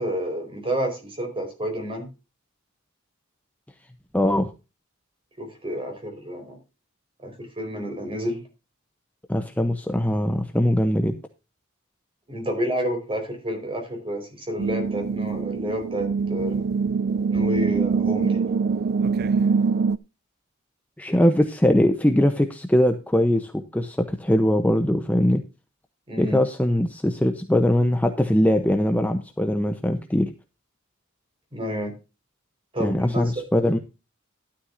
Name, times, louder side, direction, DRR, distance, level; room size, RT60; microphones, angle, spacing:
voice 1, 0.0-2.1 5.4-6.6 7.2-8.4 12.3-16.7 17.3-18.4 26.1-26.4 31.5-31.9 32.7-33.3, equal, 25° right, 5 dB, 4.7 m, -29 dB
voice 2, 4.1-4.5 9.3-11.2 21.0-25.4 26.2-30.3 32.8-33.8, left 1 dB, 5° left, 7 dB, 0.7 m, -21 dB
sound 1, 14.6-20.0, right 5 dB, 45° right, 0.4 m, -24 dB
12.5 x 11.5 x 2.6 m, 0.30 s
head